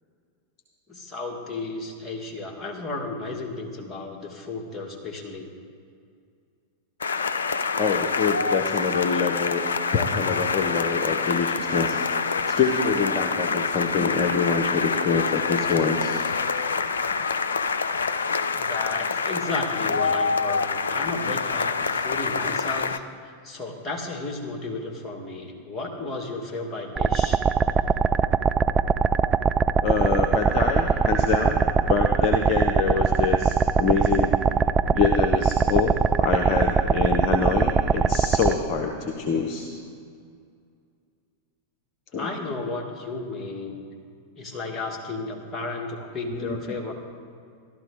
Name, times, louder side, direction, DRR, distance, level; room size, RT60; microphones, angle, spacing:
voice 1, 0.9-5.5 18.5-27.4 42.2-43.8 44.4-46.9, left 3 dB, 15° left, -1 dB, 2.0 m, -33 dB
sound 1, 7.0-23.0, left 5 dB, 70° left, 0.4 m, -26 dB
voice 2, 7.8-9.6 9.9-12.0 12.5-16.2 29.8-31.6 31.9-34.3 34.9-39.7 42.1-42.3 46.4-46.6, left 5 dB, 35° left, 2 dB, 0.9 m, -25 dB
sound 2, 27.0-38.5, right 6 dB, 20° right, 0.4 m, -21 dB
14.0 x 12.0 x 3.7 m, 2.3 s
figure-of-eight pair, 90°, 0 cm